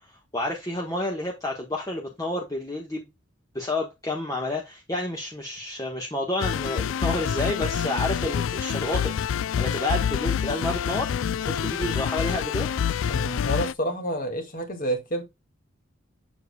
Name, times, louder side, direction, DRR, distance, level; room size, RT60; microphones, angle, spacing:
voice 1, 0.3-3.1 3.5-9.2 9.6-11.1 11.5-12.7, left 1 dB, 20° left, 1.2 m, -30 dB
sound 1, 6.4-13.7, left 8 dB, 70° left, 0.3 m, -27 dB
voice 2, 13.1-15.2, right 1 dB, 45° left, 2.1 m, -29 dB
7.6 x 6.8 x 2.2 m
head